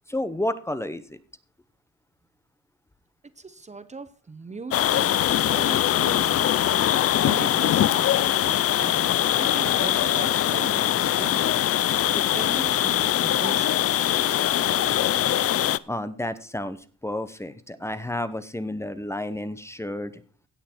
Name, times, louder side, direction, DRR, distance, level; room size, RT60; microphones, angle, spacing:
voice 1, 0.1-1.2 15.9-16.8 17.0-20.2, left 1 dB, 10° left, 12 dB, 0.9 m, -31 dB
voice 2, 3.4-5.2 5.5-6.5 7.2-11.6 12.1-13.9, right 4 dB, 25° right, 12 dB, 0.9 m, -39 dB
sound 1, 4.7-15.8, left 12 dB, 50° left, 0.5 m, -22 dB
17.0 x 6.7 x 4.5 m, 0.40 s
cardioid pair, 90°, 30 cm